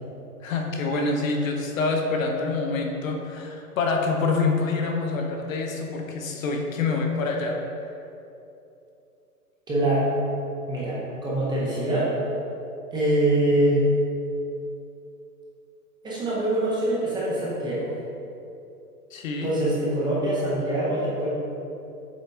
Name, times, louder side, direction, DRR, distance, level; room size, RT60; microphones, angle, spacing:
voice 1, 0.4-7.6 19.1-19.5, left 3 dB, 60° left, 2 dB, 0.9 m, -26 dB
voice 2, 9.7-10.1 10.7-12.1 12.9-13.8 16.0-17.9 19.4-21.3, right 1 dB, 10° right, -7 dB, 0.8 m, -24 dB
7.5 x 3.9 x 3.5 m, 2.8 s
hypercardioid pair, 135°, 47 cm